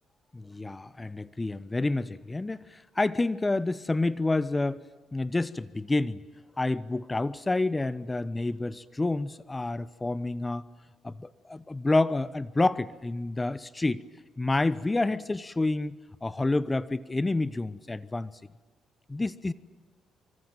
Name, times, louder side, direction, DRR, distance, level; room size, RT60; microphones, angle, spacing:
voice 1, 0.3-4.8 5.1-6.2 6.6-10.6 11.0-14.0 14.4-18.3 19.1-19.5, left 2 dB, 20° left, 17 dB, 0.9 m, -28 dB
25.0 x 25.0 x 9.0 m, 1.3 s
cardioid pair, 90°, 0 cm